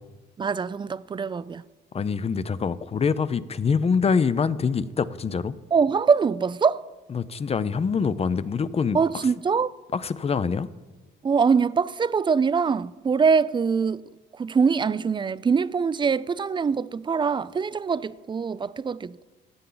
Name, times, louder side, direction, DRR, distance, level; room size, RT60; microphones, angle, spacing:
voice 1, 0.4-1.6 5.7-6.8 8.9-9.7 11.2-14.0 14.4-19.2, right 5 dB, 25° right, 0.4 m, -23 dB
voice 2, 1.9-5.6 7.1-9.3 9.9-10.7, left 5 dB, 30° left, 0.5 m, -25 dB
15.0 x 8.4 x 3.9 m
cardioid pair, 90°, 20 cm